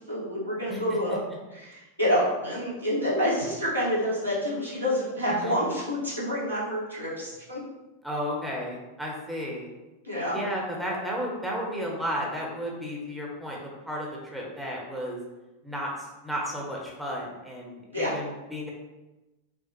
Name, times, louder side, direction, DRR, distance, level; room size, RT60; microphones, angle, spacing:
voice 1, 0.1-1.2 1.5-7.6 10.0-10.4 17.9-18.2, equal, 90° right, -9 dB, 1.5 m, -28 dB
voice 2, 8.0-9.7 10.3-15.2 15.6-15.9 16.2-18.7, equal, ahead, -3 dB, 0.9 m, -33 dB
5.1 x 2.0 x 3.0 m, 1.1 s
figure-of-eight pair, 90°, 0 cm